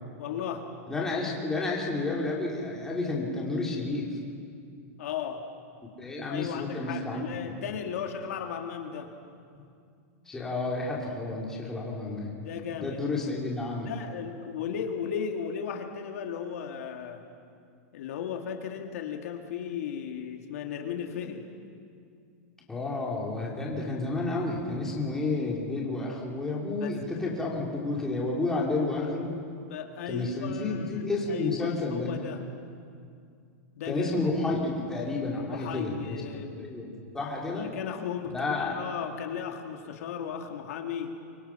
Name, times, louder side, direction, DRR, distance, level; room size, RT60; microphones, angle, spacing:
voice 1, 0.2-0.7 5.0-5.4 6.3-9.1 12.4-13.3 13.8-17.2 17.9-21.4 26.8-26.9 29.6-32.4 33.8-34.1 35.5-36.7 37.5-41.1, left 8 dB, 65° left, 3 dB, 2.3 m, -35 dB
voice 2, 0.9-4.1 6.0-7.6 10.3-12.4 12.7-13.9 22.7-29.4 30.1-32.2 33.8-36.2 36.6-37.8 38.3-38.8, left 2 dB, 5° left, -3 dB, 2.7 m, -31 dB
24.5 x 24.5 x 5.8 m, 2.3 s
supercardioid pair, 175°, 8 cm